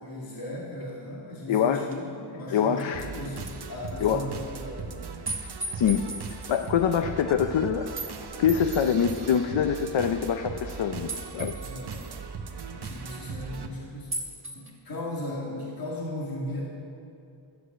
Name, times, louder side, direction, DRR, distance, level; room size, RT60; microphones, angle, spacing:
voice 1, 0.0-5.1 11.6-12.2 12.6-14.3 14.6-16.6, left 1 dB, 45° left, -3 dB, 2.1 m, -37 dB
voice 2, 1.5-1.9 2.5-3.1 4.0-4.2 5.7-7.9 8.4-11.6, left 8 dB, 70° left, 7 dB, 0.7 m, -25 dB
sound 1, 1.9-2.0 2.6-3.0 3.4-3.5 3.9-4.0 5.3-6.7 8.0-8.1 8.5-9.4 11.1-12.2 14.1-14.7, right 2 dB, 25° right, 1.3 m, -37 dB
sound 2, 2.9-13.7, right 5 dB, 55° right, 1.0 m, -38 dB
12.0 x 8.1 x 8.0 m, 2.5 s
wide cardioid pair, 125°, 48 cm